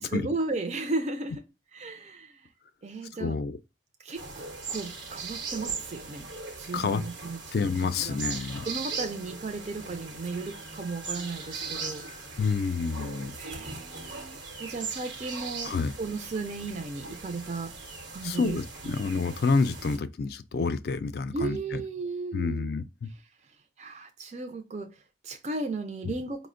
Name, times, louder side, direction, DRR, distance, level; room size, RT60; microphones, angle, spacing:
voice 1, 0.1-1.4 1.7-2.4 2.8-3.4 4.0-6.3 6.6-8.2 8.7-12.1 13.4-17.8 18.1-19.0 21.3-22.7 23.8-26.5, right 3 dB, 40° right, 0.4 m, -35 dB
voice 2, 3.2-3.6 6.7-7.0 7.5-8.6 12.4-13.3 15.7-15.9 18.2-21.6 22.3-23.1, left 4 dB, 55° left, 0.3 m, -28 dB
sound 1, 4.1-20.0, right 4 dB, 90° right, 0.9 m, -39 dB
4.9 x 2.1 x 2.4 m
head